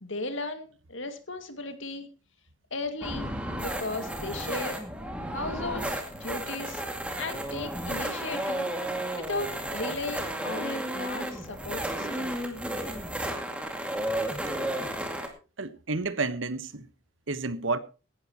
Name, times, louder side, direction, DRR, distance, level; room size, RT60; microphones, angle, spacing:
voice 1, 0.0-2.1 2.7-3.3 3.6-4.8 5.3-6.8 7.2-8.7 9.1-12.4, left 2 dB, 70° left, 2.2 m, -36 dB
sound 1, 3.0-15.3, right 1 dB, 5° right, 2.2 m, -33 dB
voice 2, 15.6-16.8 17.3-17.8, right 3 dB, 75° right, 1.2 m, -30 dB
18.0 x 12.5 x 3.0 m
head